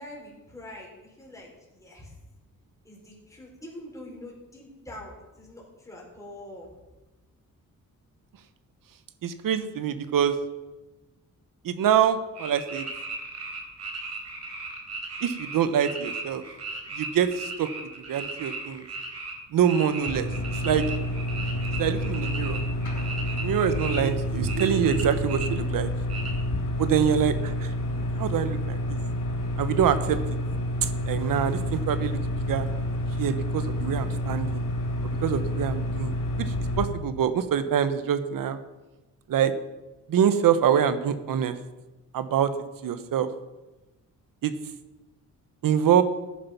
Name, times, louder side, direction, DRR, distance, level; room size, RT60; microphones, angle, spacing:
voice 1, 0.0-2.1 2.8-6.7, left 1 dB, 10° left, -3 dB, 4.4 m, -44 dB
voice 2, 9.2-10.4 11.6-12.9 15.2-16.4 16.9-17.7 18.1-18.9 19.5-20.9 21.8-22.6 23.4-25.9 26.8-27.7 28.2-29.0 29.6-30.2 30.8-32.2 32.5-32.7 33.2-34.6 35.2-36.1 36.4-38.6 39.3-39.5 40.1-41.6 42.1-42.5 42.8-43.3 44.4-44.5 45.6-46.0, right 8 dB, 85° right, 11 dB, 1.1 m, -25 dB
sound 1, 12.3-19.3 19.6-24.0 24.4-25.5 26.1-26.3, right 3 dB, 50° right, 3.9 m, -36 dB
sound 2, 20.0-36.9, left 1 dB, 75° left, 3.4 m, -29 dB
14.5 x 9.9 x 5.9 m, 1.1 s
cardioid pair, 125°, 33 cm